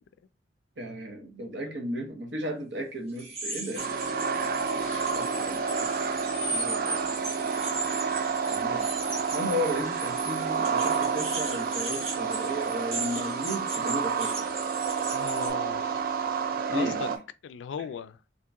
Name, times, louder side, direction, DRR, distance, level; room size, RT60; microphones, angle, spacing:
voice 1, 0.8-3.8 5.1-5.9 6.5-7.1 8.5-8.9 9.3-14.4 16.7-17.0, equal, 70° right, 1.0 m, -34 dB
sound 1, 3.2-15.5, right 2 dB, 35° right, 1.0 m, -37 dB
sound 2, 3.8-17.2, right 5 dB, 50° right, 0.4 m, -29 dB
voice 2, 15.1-16.4 16.7-17.1 17.4-18.2, left 7 dB, 85° left, 0.3 m, -38 dB
2.9 x 2.8 x 3.5 m
head